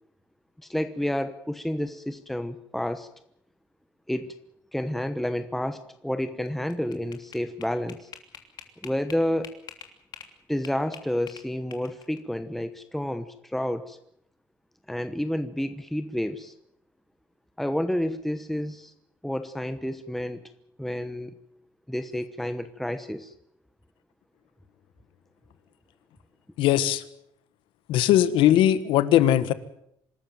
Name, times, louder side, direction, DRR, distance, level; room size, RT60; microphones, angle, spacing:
voice 1, 0.6-3.1 4.1-4.3 4.7-8.1 8.8-9.5 10.5-14.0 14.9-16.5 17.6-18.9 19.2-20.4 20.8-21.3 21.9-23.3, left 1 dB, ahead, 10 dB, 1.0 m, -30 dB
sound 1, 6.5-10.3 10.6-12.2, left 8 dB, 55° left, 3.1 m, -45 dB
voice 2, 26.6-27.0 27.9-29.5, left 12 dB, 90° left, 14 dB, 1.5 m, -20 dB
25.5 x 13.5 x 9.1 m, 0.74 s
cardioid pair, 130°, 9 cm